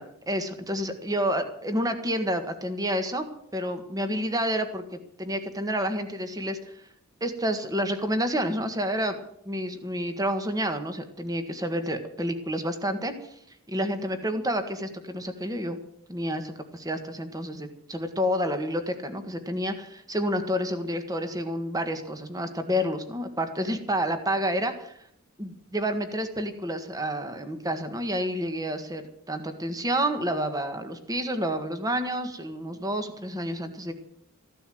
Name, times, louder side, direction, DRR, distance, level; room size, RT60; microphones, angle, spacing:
voice 1, 0.3-3.3 3.5-6.8 7.2-9.2 9.5-13.3 13.7-15.8 16.1-24.9 25.4-29.0 29.3-33.9, equal, 15° right, 7 dB, 1.6 m, -29 dB
15.0 x 11.5 x 7.8 m, 0.70 s
head